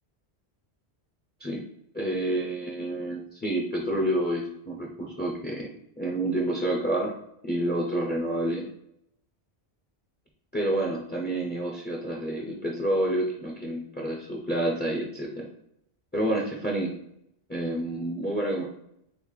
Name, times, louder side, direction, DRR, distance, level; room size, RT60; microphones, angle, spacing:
voice 1, 1.9-5.7 6.0-7.1 7.4-8.6 10.5-15.5 16.1-16.9 17.5-18.6, right 1 dB, 15° left, -3 dB, 0.5 m, -28 dB
4.1 x 3.3 x 3.2 m, 0.77 s
omnidirectional pair, 1.1 m